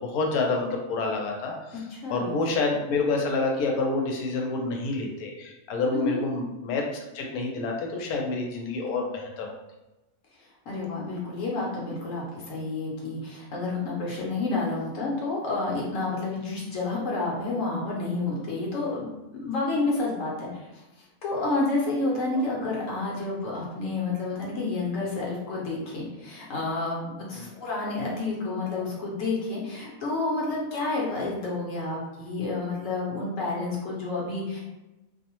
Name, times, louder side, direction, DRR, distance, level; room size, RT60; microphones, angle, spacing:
voice 1, 0.0-1.8 2.1-6.8 7.1-9.6 27.3-27.4, left 3 dB, 85° left, 1 dB, 1.1 m, -28 dB
voice 2, 1.9-2.3 6.0-6.2 10.7-19.1 19.4-34.6, left 3 dB, 65° left, -4 dB, 1.0 m, -30 dB
2.6 x 2.0 x 2.9 m, 1.0 s
omnidirectional pair, 1.5 m